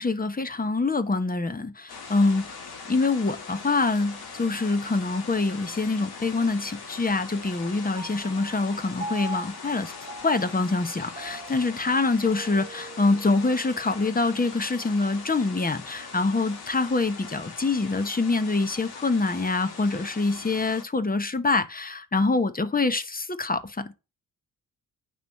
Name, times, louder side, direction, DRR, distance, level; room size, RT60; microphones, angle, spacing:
voice 1, 0.0-2.4 2.9-9.9 10.2-23.9, left 3 dB, 20° left, 0.9 m, -25 dB
sound 1, 1.9-20.8, left 4 dB, 70° left, 1.5 m, -41 dB
Piano, 8.0-14.7, right 2 dB, 15° right, 0.9 m, -42 dB
9.1 x 3.1 x 5.4 m
supercardioid pair, 55°, 39 cm